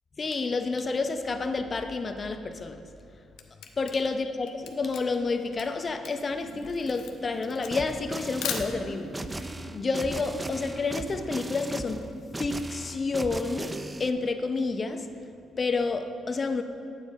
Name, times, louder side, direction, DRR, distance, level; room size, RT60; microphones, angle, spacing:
voice 1, 0.2-2.8 3.8-12.1 12.4-13.7 14.0-15.1 15.6-16.6, left 3 dB, 35° left, 7 dB, 0.7 m, -30 dB
Camera, 2.9-9.2, left 8 dB, 85° left, 0.7 m, -39 dB
sound 1, 6.3-12.5, right 2 dB, 45° right, 1.2 m, -44 dB
sound 2, 7.7-14.1, right 2 dB, 15° right, 0.4 m, -38 dB
9.5 x 8.2 x 4.2 m, 2.4 s
cardioid pair, 90°, 0 cm